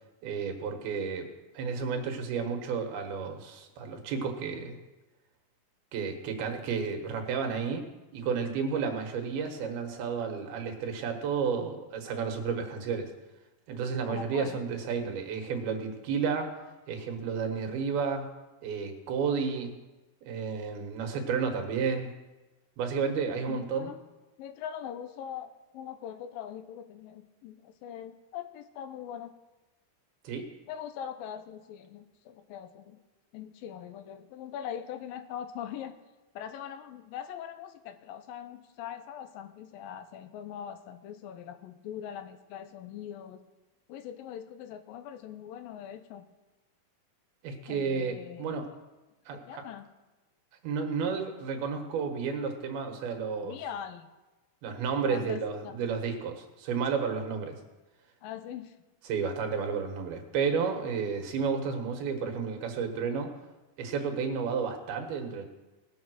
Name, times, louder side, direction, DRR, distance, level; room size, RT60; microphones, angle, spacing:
voice 1, 0.2-1.3 1.6-4.8 5.9-7.8 8.1-13.1 13.7-16.5 16.9-18.3 18.6-19.7 20.3-22.1 22.8-23.9 30.3-30.5 47.4-48.7 49.3-49.6 50.6-53.6 54.6-57.6 59.1-63.3 63.8-65.5, right 6 dB, 90° right, 4 dB, 3.3 m, -32 dB
voice 2, 14.1-14.6 23.5-24.0 24.4-29.3 30.7-33.0 33.3-36.0 36.4-43.4 43.9-46.3 47.7-48.6 49.3-49.9 53.4-54.1 55.1-55.9 58.2-58.8, left 9 dB, 80° left, 10 dB, 2.4 m, -42 dB
19.0 x 7.2 x 6.2 m, 1.1 s
omnidirectional pair, 4.3 m